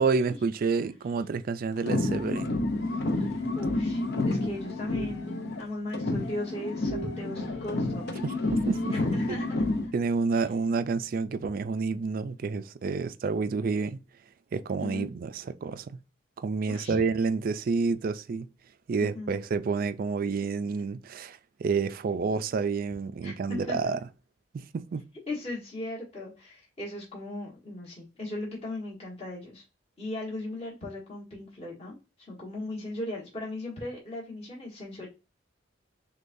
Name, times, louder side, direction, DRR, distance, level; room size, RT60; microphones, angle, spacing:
voice 1, 0.0-2.5 8.2-9.0 9.3-9.4 9.9-14.0 14.5-16.0 16.4-18.5 18.9-24.0 24.5-25.0, right 4 dB, 45° right, 0.3 m, -29 dB
sound 1, 1.8-5.6 5.9-9.9, left 2 dB, 60° left, 0.7 m, -30 dB
voice 2, 3.1-8.1 8.9-9.7 10.3-10.4 14.8-15.1 16.7-17.0 19.0-19.3 23.2-23.9 25.3-29.6 30.0-31.9 32.3-35.1, left 2 dB, 30° left, 1.4 m, -37 dB
sound 2, 4.7-5.5 5.9-8.1 8.4-9.0, right 1 dB, 90° left, 1.0 m, -43 dB
6.5 x 2.3 x 2.6 m
head